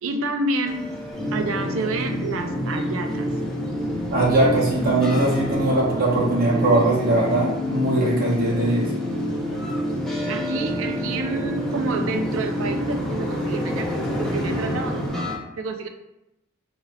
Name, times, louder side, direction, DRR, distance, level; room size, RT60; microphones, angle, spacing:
voice 1, 0.0-0.9 1.3-3.3 9.5-9.7 10.3-15.9, right 3 dB, 75° right, 6 dB, 0.4 m, -29 dB
sound 1, 0.6-15.4, left 1 dB, 5° left, 0.4 m, -34 dB
sound 2, 1.1-15.1, equal, 20° left, 1.0 m, -28 dB
voice 2, 4.1-8.9, right 2 dB, 45° right, -6 dB, 0.9 m, -21 dB
4.6 x 2.2 x 2.2 m, 0.90 s
head